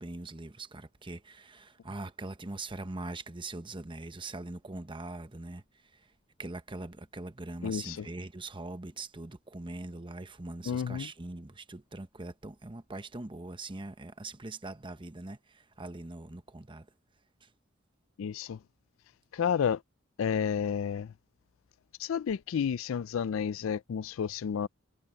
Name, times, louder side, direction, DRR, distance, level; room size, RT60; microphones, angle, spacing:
voice 1, 0.0-5.6 5.9-6.0 6.4-16.9 17.4-17.5, right 2 dB, 25° right, 1.0 m, -42 dB
voice 2, 7.6-8.1 10.7-11.1 18.2-18.6 19.3-19.8 20.2-21.1 22.0-24.7, left 7 dB, 70° left, 0.4 m, -31 dB
head